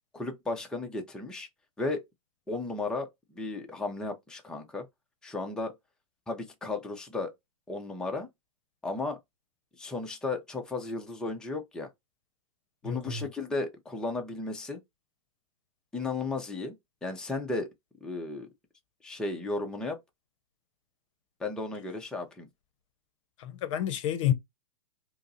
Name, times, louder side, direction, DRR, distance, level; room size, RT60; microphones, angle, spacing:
voice 1, 0.1-1.5 1.8-2.0 2.5-4.9 5.2-5.7 6.3-7.3 7.7-8.3 8.8-9.2 9.8-11.9 12.8-14.8 15.9-16.7 17.0-17.7 18.0-18.5 19.0-20.0 21.4-22.5, left 3 dB, 5° left, 0.5 m, -34 dB
voice 2, 12.8-13.3 23.4-24.3, left 10 dB, 55° left, 0.7 m, -29 dB
5.0 x 2.0 x 2.6 m
hypercardioid pair, 130°, 19 cm